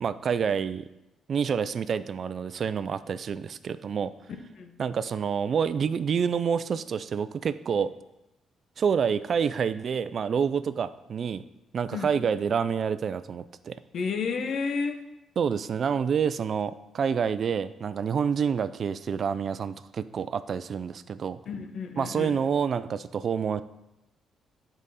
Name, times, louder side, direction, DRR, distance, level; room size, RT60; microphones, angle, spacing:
voice 1, 0.0-0.8 1.3-4.1 4.8-7.9 8.8-11.4 11.7-13.8 15.4-21.4 22.0-23.6, right 7 dB, 50° right, 14 dB, 0.3 m, -28 dB
voice 2, 13.9-15.0 21.5-22.4, left 5 dB, 60° left, 7 dB, 0.8 m, -31 dB
7.5 x 5.0 x 4.1 m, 0.92 s
cardioid pair, 90°, 0 cm